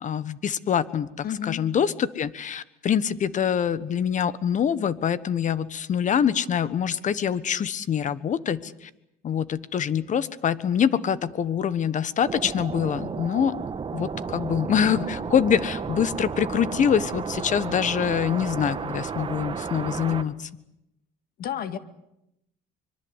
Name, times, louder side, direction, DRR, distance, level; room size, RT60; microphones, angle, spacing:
voice 1, 0.0-1.1 1.4-8.9 9.2-13.5 13.9-20.5, left 8 dB, 45° left, 16 dB, 1.4 m, -25 dB
voice 2, 1.2-1.6 21.4-21.8, left 9 dB, 65° left, 10 dB, 2.1 m, -31 dB
sound 1, 12.2-20.2, right 5 dB, 30° right, 1.5 m, -33 dB
25.0 x 23.0 x 8.2 m, 0.83 s
cardioid pair, 110°, 17 cm